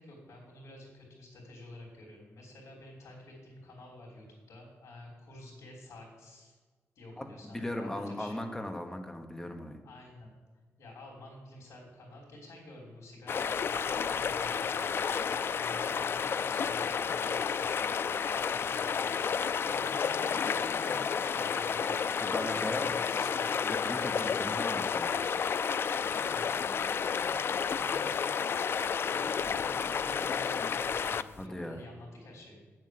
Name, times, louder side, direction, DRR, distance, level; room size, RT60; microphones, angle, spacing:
voice 1, 0.0-6.6 6.9-8.4 9.8-10.3 10.8-23.8 26.0-28.4 29.1-32.7, left 1 dB, 90° left, -6 dB, 3.1 m, -50 dB
voice 2, 7.2-9.8 22.2-23.3 23.6-25.2 31.4-31.8, left 1 dB, 10° left, 4 dB, 1.1 m, -38 dB
sound 1, 13.3-31.4, left 6 dB, 50° left, 0.3 m, -31 dB
9.1 x 7.6 x 7.7 m, 1.4 s
wide cardioid pair, 145°, 5 cm